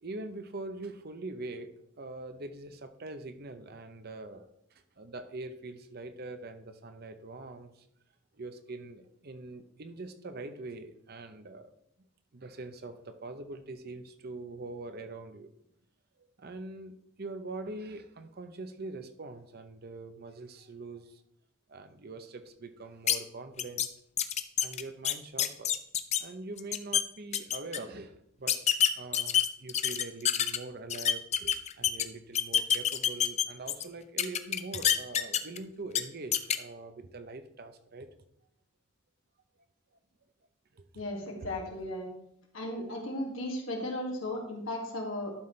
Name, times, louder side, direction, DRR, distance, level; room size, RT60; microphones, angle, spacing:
voice 1, 0.0-1.7 2.0-7.9 8.3-11.7 12.3-15.5 16.2-21.2 21.7-23.9 24.6-25.7 26.2-28.6 29.0-38.1 40.7-41.7, right 2 dB, 50° right, 9 dB, 0.7 m, -43 dB
sound 1, 23.1-23.2 23.6-23.9 24.2-26.2 26.6-27.0 27.3-27.8 28.5-30.6 30.9-32.0 32.3-33.8 34.2-35.6 35.9-36.0 36.3-36.6, left 9 dB, 35° left, 0.4 m, -27 dB
voice 2, 41.0-42.1 42.5-45.3, left 1 dB, 85° left, 0 dB, 2.1 m, -35 dB
11.5 x 5.6 x 3.3 m, 0.75 s
head